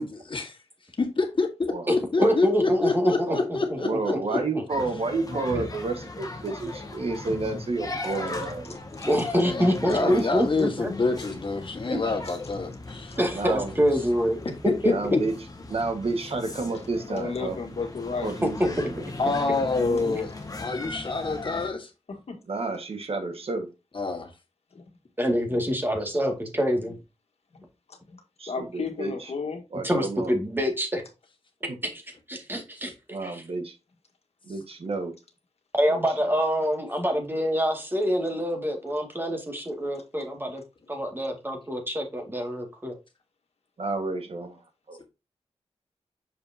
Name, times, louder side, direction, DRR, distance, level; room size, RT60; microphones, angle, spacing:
voice 1, 0.0-0.5 1.0-4.4 5.3-5.4 7.4-7.6 9.4-13.1 14.4-15.2 19.2-21.9 23.9-24.3, left 3 dB, 50° left, 4 dB, 1.7 m, -27 dB
voice 2, 2.2-3.8 4.3-4.6 5.5-5.6 8.7-8.8 9.0-10.9 11.9-12.0 13.2-14.4 14.8-14.9 18.8-18.9 25.2-26.9 29.8-31.0 31.8-32.0 32.3-32.9 33.2-33.4 35.8-40.6 40.9-42.9, equal, 20° right, 3 dB, 2.1 m, -26 dB
voice 3, 3.8-8.6 10.0-10.1 13.2-13.7 14.9-15.3 15.7-17.6 18.2-19.0 19.8-20.2 22.5-23.7 28.4-29.1 29.7-30.3 33.1-33.7 34.5-35.1 35.9-36.0 43.8-44.6 44.9-45.0, right 3 dB, 60° right, 6 dB, 1.6 m, -30 dB
sound 1, 4.7-21.7, left 2 dB, 35° left, 1.5 m, -38 dB
voice 4, 8.6-9.1 12.2-12.3 13.1-13.2 17.0-18.4 22.1-22.4 24.7-24.9 25.5-25.6 27.5-28.2 28.5-29.6, left 4 dB, 70° left, 4 dB, 1.7 m, -34 dB
6.7 x 5.3 x 2.8 m, 0.27 s
wide cardioid pair, 70°, 11 cm